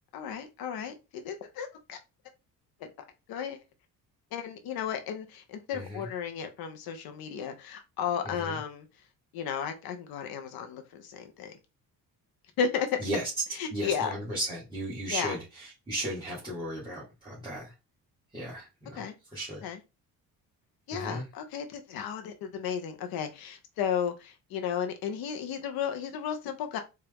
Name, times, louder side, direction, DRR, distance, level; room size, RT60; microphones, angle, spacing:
voice 1, 0.1-2.0 3.3-3.6 4.3-8.9 9.3-11.6 12.6-13.0 13.6-14.1 15.1-15.4 19.0-19.1 19.6-19.8 20.9-26.8, left 7 dB, 80° left, 0.8 m, -34 dB
voice 2, 5.7-6.1 8.2-8.6 13.0-13.3 13.7-17.7 18.3-19.7 20.9-21.3, right 1 dB, 15° right, 1.6 m, -36 dB
4.4 x 2.5 x 3.4 m
cardioid pair, 165°, 36 cm